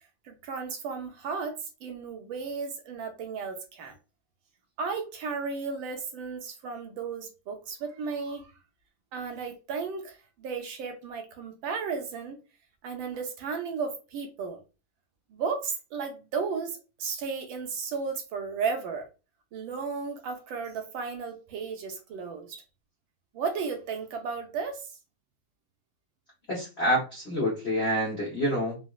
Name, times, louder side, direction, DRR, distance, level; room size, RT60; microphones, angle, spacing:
voice 1, 0.2-3.9 4.8-8.5 9.1-12.4 12.8-14.6 15.3-19.1 19.5-22.6 23.3-24.9, right 5 dB, 75° right, 1.3 m, -34 dB
voice 2, 26.5-28.8, equal, 70° left, 0.6 m, -27 dB
4.0 x 2.1 x 2.2 m
omnidirectional pair, 2.4 m